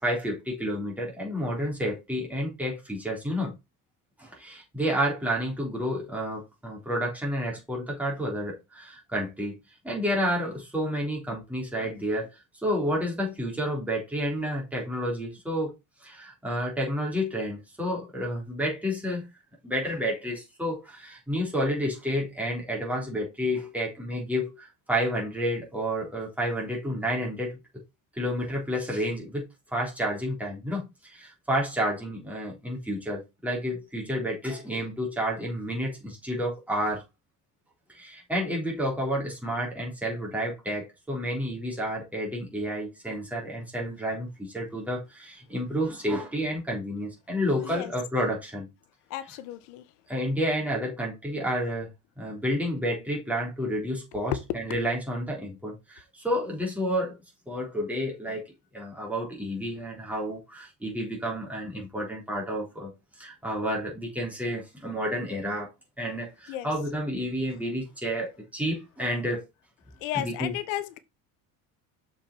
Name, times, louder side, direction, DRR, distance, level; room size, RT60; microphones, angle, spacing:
voice 1, 0.0-3.5 4.2-9.6 9.8-12.3 12.6-15.7 16.0-19.3 19.6-27.6 28.2-29.4 29.7-37.0 37.9-48.7 50.1-51.9 52.2-57.2 57.5-58.4 58.7-62.9 63.2-65.7 66.0-69.5 70.1-70.5, equal, 5° right, 3.7 m, -30 dB
voice 2, 49.1-49.9 66.5-66.7 70.0-71.0, left 13 dB, 85° left, 1.0 m, -34 dB
6.8 x 5.2 x 4.3 m
cardioid pair, 145°, 36 cm